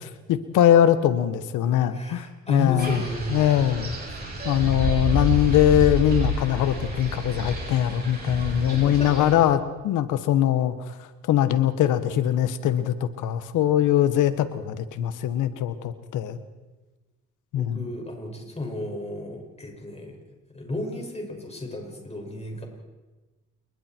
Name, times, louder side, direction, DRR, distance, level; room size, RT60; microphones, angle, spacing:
voice 1, 0.3-3.0 3.3-3.9 4.4-9.6 9.8-16.4 17.5-17.9, left 11 dB, 90° left, 12 dB, 1.4 m, -22 dB
voice 2, 1.9-3.5 8.7-9.3 17.5-20.2 20.5-22.6, left 1 dB, 20° left, 1 dB, 6.5 m, -33 dB
Wind, 2.8-9.3, equal, 30° right, 7.6 m, -29 dB
30.0 x 20.0 x 4.6 m, 1.2 s
cardioid pair, 90°, 30 cm